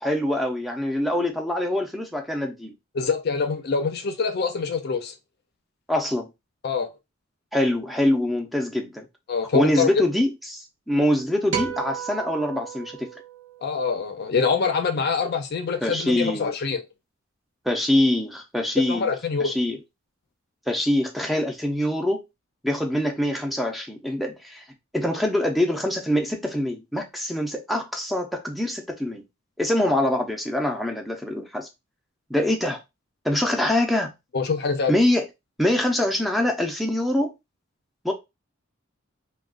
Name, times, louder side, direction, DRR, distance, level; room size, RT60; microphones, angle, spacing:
voice 1, 0.0-2.7 5.9-6.3 7.5-9.0 9.5-13.1 15.8-16.5 17.7-19.1 19.4-19.8 20.7-22.2 22.6-24.6 24.9-29.2 29.6-31.7 32.3-32.8 33.2-34.1 34.9-35.3 35.6-37.3 38.0-38.1, left 1 dB, ahead, 0.5 m, -24 dB
voice 2, 2.9-5.1 6.6-6.9 9.3-10.0 13.6-16.8 18.8-19.5 34.3-34.9, left 5 dB, 50° left, 0.5 m, -25 dB
sound 1, 11.5-14.0, right 8 dB, 60° right, 0.8 m, -33 dB
2.4 x 2.2 x 3.6 m
head